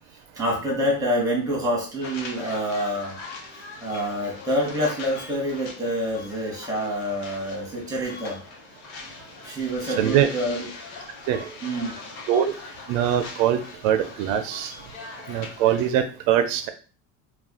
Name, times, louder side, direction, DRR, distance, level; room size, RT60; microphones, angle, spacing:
voice 1, 0.4-3.2 3.5-8.4 9.4-10.7 11.6-11.9, equal, 10° right, -2 dB, 1.1 m, -27 dB
sound 1, 2.0-16.0, left 4 dB, 85° left, 0.9 m, -41 dB
voice 2, 10.0-10.3 11.3-11.5 12.3-12.5 12.9-14.7 15.3-16.7, right 10 dB, 85° right, 8 dB, 0.5 m, -22 dB
2.4 x 2.3 x 3.6 m, 0.37 s
cardioid pair, 145°, 38 cm